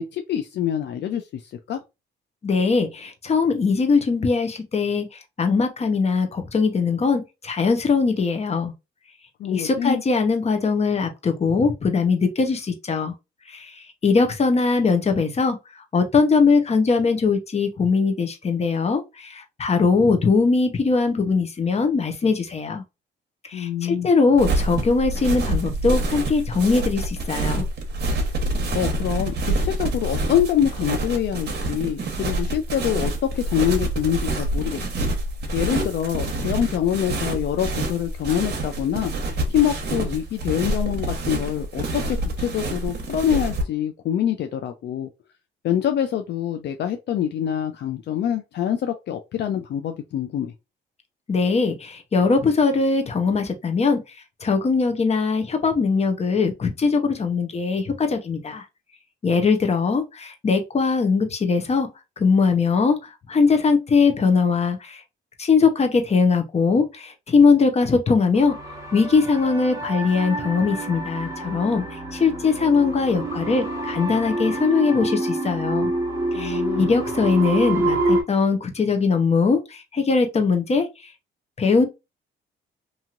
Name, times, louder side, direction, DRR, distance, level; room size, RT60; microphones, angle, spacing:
voice 1, 0.0-1.4 1.7-1.8 9.4-10.0 23.5-24.1 28.7-34.8 35.5-39.1 39.5-45.1 45.6-50.5 76.3-76.9, left 10 dB, 60° left, 0.4 m, -25 dB
voice 2, 2.4-8.7 9.5-13.1 13.5-22.8 23.5-27.7 51.3-54.0 54.4-58.6 59.2-61.9 62.2-65.0 65.4-71.8 72.1-75.9 76.3-81.1 81.6-81.9, left 4 dB, 30° left, 0.8 m, -21 dB
sound 1, 24.4-43.6, right 2 dB, 55° right, 0.9 m, -27 dB
sound 2, 68.3-78.2, right 2 dB, 15° right, 1.1 m, -27 dB
2.9 x 2.7 x 2.4 m
cardioid pair, 90°, 20 cm